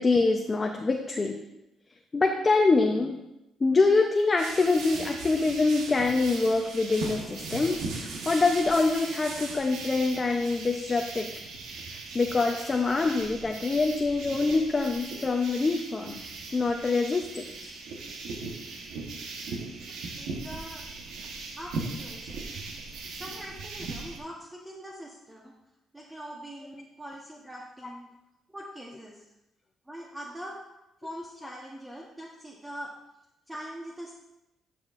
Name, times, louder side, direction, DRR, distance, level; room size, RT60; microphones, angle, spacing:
voice 1, 0.0-1.4 2.1-3.2 3.6-11.3 12.1-16.2 16.5-17.7, left 3 dB, 30° left, 2 dB, 0.7 m, -25 dB
sound 1, 4.4-24.2, right 3 dB, 85° right, 1.1 m, -38 dB
voice 2, 19.9-20.8 21.6-22.5 23.1-25.5 25.9-28.1 28.5-29.2 29.9-30.6 31.0-32.9 33.5-34.1, equal, 10° right, -2 dB, 1.0 m, -42 dB
11.5 x 5.9 x 2.5 m, 0.90 s
cardioid pair, 90°, 0 cm